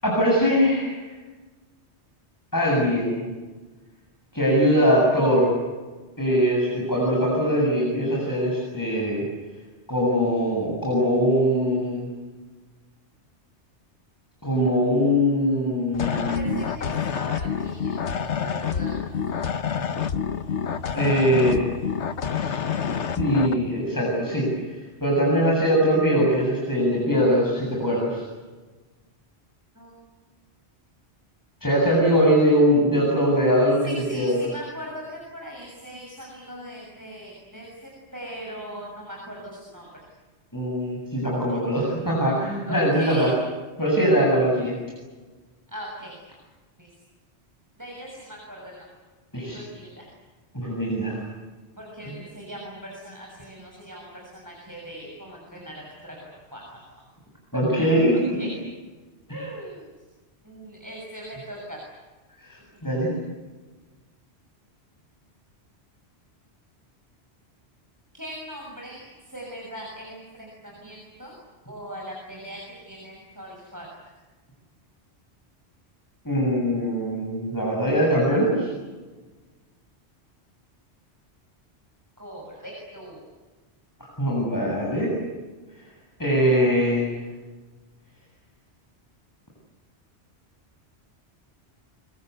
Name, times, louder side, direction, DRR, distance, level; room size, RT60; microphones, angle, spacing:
voice 1, 0.0-1.0 2.5-3.3 4.3-5.5 6.2-9.2 9.9-12.1 14.4-16.5 20.9-21.6 22.4-22.7 23.2-24.5 25.0-28.2 31.6-34.5 40.5-43.3 43.8-44.7 49.3-49.6 50.5-51.2 57.5-58.1 59.3-59.5 62.4-63.1 76.2-78.7 84.0-85.1 86.2-87.1, equal, 15° left, -4 dB, 8.0 m, -22 dB
sound 1, 15.9-23.5, left 7 dB, 90° left, 1.4 m, -28 dB
voice 2, 16.1-19.4 20.9-21.4 29.7-29.9 33.8-40.1 42.7-43.3 45.7-46.2 46.8-46.9 47.8-48.9 49.5-50.1 51.8-57.0 58.3-58.5 59.3-59.9 60.4-61.8 62.8-63.0 68.1-71.4 71.7-73.9 82.2-83.3, equal, 15° right, -2 dB, 7.1 m, -40 dB
25.5 x 25.5 x 8.3 m, 1.3 s
omnidirectional pair, 1.1 m